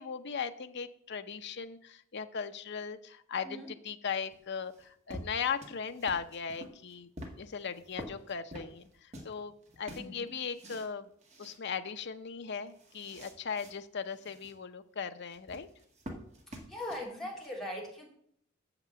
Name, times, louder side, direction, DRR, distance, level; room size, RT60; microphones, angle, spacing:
voice 1, 0.0-7.1 7.4-11.1 11.4-15.7, left 6 dB, 55° left, 9 dB, 0.6 m, -38 dB
sound 1, 4.3-9.4 9.6-10.9 11.2-11.6 12.0-12.1 12.4-13.7 14.1-14.5 15.3-17.5, equal, 35° right, 1.5 m, -48 dB
voice 2, 10.0-10.3 16.7-18.1, left 1 dB, ahead, -4 dB, 2.9 m, -40 dB
6.9 x 6.0 x 7.5 m, 0.67 s
head